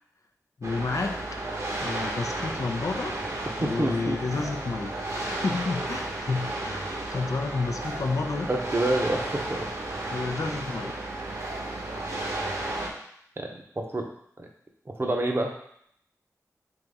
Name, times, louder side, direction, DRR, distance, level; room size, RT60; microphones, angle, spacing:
voice 1, 0.6-1.2 1.8-3.1 3.6-8.5 10.1-10.9, left 4 dB, 65° left, 5 dB, 0.5 m, -30 dB
sound 1, 0.6-12.9, right 2 dB, 60° right, 1.0 m, -33 dB
voice 2, 3.6-4.2 8.5-9.7 13.4-13.5 13.8-14.1 14.4-14.5 14.9-15.5, right 1 dB, 40° right, 2 dB, 0.8 m, -27 dB
3.9 x 3.0 x 3.5 m, 0.69 s
cardioid pair, 40°, 6 cm